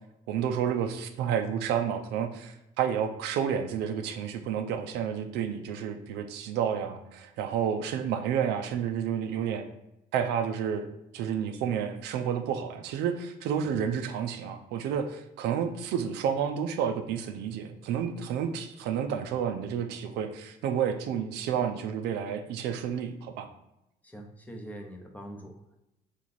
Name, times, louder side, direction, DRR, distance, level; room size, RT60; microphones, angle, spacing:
voice 1, 0.3-9.7 10.1-10.9 11.1-23.5, right 8 dB, 85° right, 7 dB, 0.5 m, -30 dB
voice 2, 24.0-25.8, right 1 dB, 10° left, 2 dB, 0.7 m, -44 dB
3.3 x 3.1 x 4.0 m, 0.87 s
cardioid pair, 110°, 17 cm